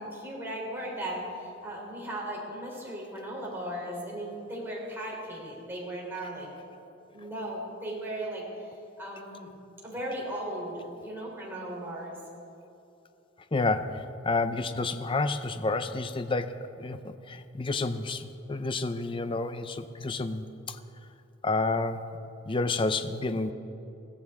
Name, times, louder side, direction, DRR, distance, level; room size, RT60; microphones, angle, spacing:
voice 1, 0.0-6.5 7.1-9.5 9.8-12.2, right 1 dB, 10° right, -4 dB, 3.4 m, -37 dB
voice 2, 13.5-20.8 21.4-22.1 22.5-23.5, left 3 dB, 25° left, 10 dB, 0.5 m, -30 dB
21.0 x 14.5 x 3.5 m, 2.7 s
head